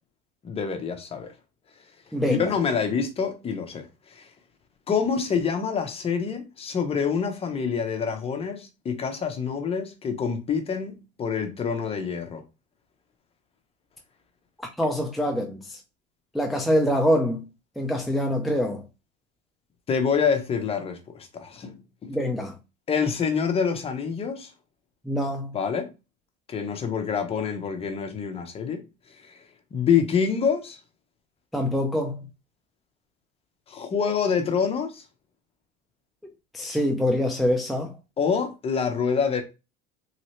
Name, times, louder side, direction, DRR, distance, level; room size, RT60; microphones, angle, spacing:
voice 1, 0.4-1.3 2.3-3.9 4.1-4.3 4.9-12.4 19.9-22.2 22.9-24.5 25.5-25.9 26.5-28.8 29.3-29.4 29.7-30.8 33.7-35.0 38.2-39.4, left 6 dB, 30° left, 0.8 m, -26 dB
voice 2, 2.1-2.5 14.8-15.8 16.3-17.4 17.8-18.8 22.1-22.5 25.1-25.5 31.5-32.2 36.5-37.9, equal, ahead, 0.5 m, -25 dB
3.2 x 2.6 x 3.1 m
supercardioid pair, 105°, 21 cm